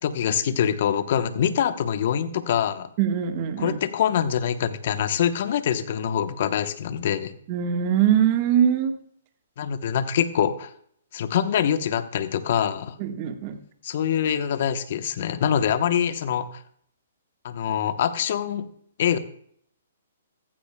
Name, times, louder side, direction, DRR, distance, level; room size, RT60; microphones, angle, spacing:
voice 1, 0.0-2.9 3.6-7.3 9.6-10.7 11.1-13.0 13.8-16.6 17.4-18.7 19.0-19.2, left 9 dB, 55° left, 11 dB, 1.0 m, -24 dB
voice 2, 3.0-3.8 7.5-8.9 13.0-13.6, right 9 dB, 40° right, 7 dB, 1.4 m, -22 dB
15.0 x 15.0 x 2.2 m, 0.65 s
hypercardioid pair, 140°, 0 cm